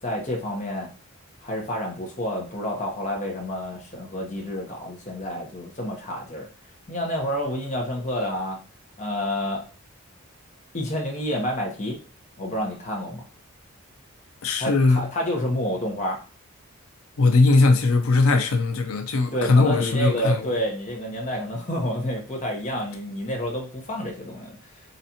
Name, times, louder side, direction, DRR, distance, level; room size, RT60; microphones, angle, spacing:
voice 1, 0.0-0.9 1.4-6.5 6.9-8.6 9.0-9.6 10.7-12.0 12.4-13.3 14.6-16.2 19.3-24.6, equal, 35° left, 1.0 m, -29 dB
voice 2, 14.4-15.0 17.2-20.5, left 3 dB, 80° left, 0.6 m, -19 dB
4.0 x 3.2 x 2.8 m
head